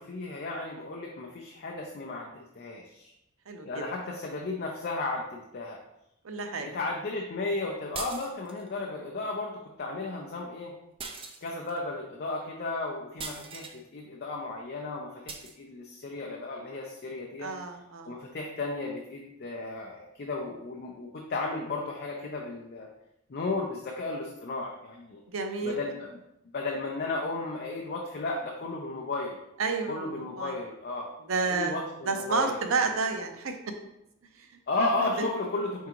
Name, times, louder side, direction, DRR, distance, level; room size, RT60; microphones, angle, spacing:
voice 1, 0.0-3.1 3.7-5.8 6.6-10.7 11.4-17.5 18.1-22.9 23.3-25.2 25.6-26.1 26.5-29.4 29.9-31.1 31.4-32.6 34.7-35.9, left 2 dB, 50° left, 0 dB, 0.5 m, -34 dB
voice 2, 3.5-3.8 6.2-6.7 8.9-9.0 17.4-18.1 25.3-25.8 29.6-30.6 31.3-31.8 32.1-33.5 34.4-34.6 35.0-35.3, right 4 dB, 75° right, 5 dB, 0.6 m, -31 dB
sound 1, 7.9-8.7 11.0-11.8 13.2-13.8 15.3-15.6, right 5 dB, 25° right, 0.4 m, -40 dB
4.8 x 3.6 x 2.9 m, 0.84 s
head